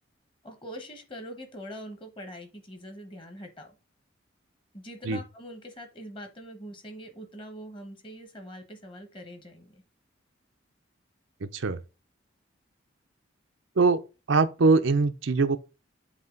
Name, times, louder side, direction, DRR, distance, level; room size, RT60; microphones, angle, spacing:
voice 1, 0.4-3.7 4.7-9.8, equal, 25° left, 1.3 m, -43 dB
voice 2, 14.3-15.6, right 4 dB, 75° right, 0.6 m, -22 dB
8.0 x 2.9 x 5.2 m
head